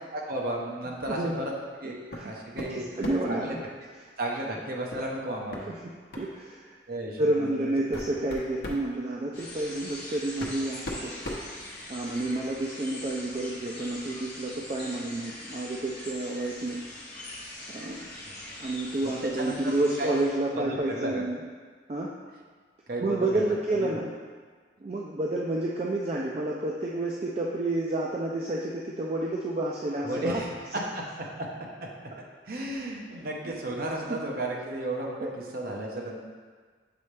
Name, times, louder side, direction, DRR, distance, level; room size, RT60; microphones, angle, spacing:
voice 1, 0.1-1.5 1.8-2.9 3.3-3.6 4.2-5.7 6.9-7.7 18.3-18.4 19.0-20.1 20.6-21.2 22.9-24.0 30.0-31.0 31.4-31.5 32.4-35.3 35.5-36.2, right 1 dB, 50° right, -1 dB, 0.9 m, -34 dB
voice 2, 1.1-1.4 2.1-2.3 2.7-3.6 5.7-6.8 7.2-11.3 11.9-16.8 17.7-18.1 18.6-21.4 21.9-22.1 23.0-24.1 24.8-30.4 33.4-33.5 34.1-34.2 35.2-35.3, right 2 dB, 35° right, -2 dB, 0.4 m, -30 dB
sound 1, 2.1-2.3 2.6-3.4 4.9-5.1 5.5-5.6 6.1-6.3 7.2-7.3 7.7-8.9 9.9-10.0 10.4-12.2, left 1 dB, 55° left, 0.8 m, -37 dB
sound 2, 9.3-20.3, left 1 dB, 20° left, 1.6 m, -42 dB
6.9 x 4.2 x 3.3 m, 1.5 s
head